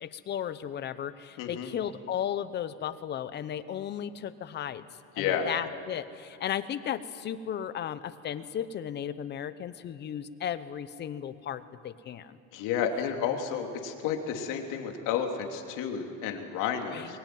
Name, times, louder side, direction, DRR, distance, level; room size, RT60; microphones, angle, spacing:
voice 1, 0.0-4.8 5.2-12.4 16.9-17.2, left 9 dB, 30° left, 13 dB, 0.8 m, -35 dB
voice 2, 1.4-1.7 5.2-5.5 12.5-17.2, left 8 dB, 55° left, 3 dB, 2.9 m, -31 dB
23.0 x 21.0 x 9.4 m, 2.4 s
cardioid pair, 160°, 37 cm